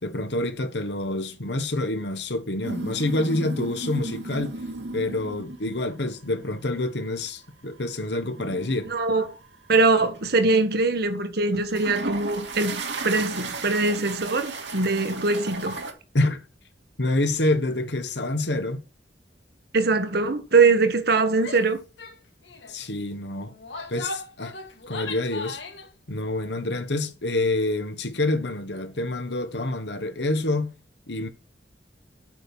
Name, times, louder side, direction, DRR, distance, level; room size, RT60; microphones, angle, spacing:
voice 1, 0.0-4.6 4.9-8.9 16.1-16.4 17.0-18.8 22.7-23.5 23.9-24.5 24.9-25.6 26.1-30.7 31.1-31.3, left 2 dB, 70° left, 1.4 m, -27 dB
sound 1, 2.6-5.8 6.3-6.6 8.1-9.8 10.1-10.5 11.5-15.9, right 3 dB, 80° right, 2.2 m, -35 dB
voice 2, 8.9-9.4 9.7-15.8 19.7-21.8, right 3 dB, 60° right, 1.4 m, -22 dB
Female speech woman speaking / Yell, 21.4-21.7 22.0-22.2 22.4-22.8 23.5-25.9, left 3 dB, 85° left, 2.2 m, -37 dB
9.0 x 6.2 x 6.1 m
head